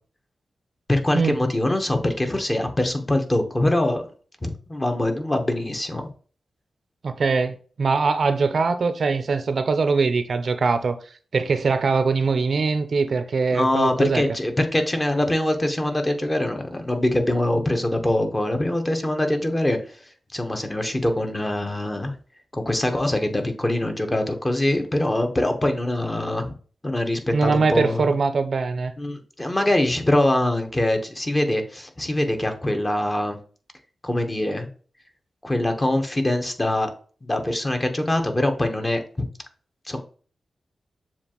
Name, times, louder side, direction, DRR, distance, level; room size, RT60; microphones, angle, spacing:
voice 1, 0.9-4.1 4.4-6.1 13.5-20.0 20.3-22.1 22.5-26.5 26.8-28.1 29.0-33.4 34.0-34.7 35.4-36.9 37.2-39.3 39.9-40.0, left 1 dB, 20° left, 0.9 m, -23 dB
voice 2, 7.0-11.0 11.3-14.2 27.3-28.9, right 4 dB, 65° right, 0.5 m, -22 dB
6.9 x 2.5 x 2.9 m
cardioid pair, 70°, 0 cm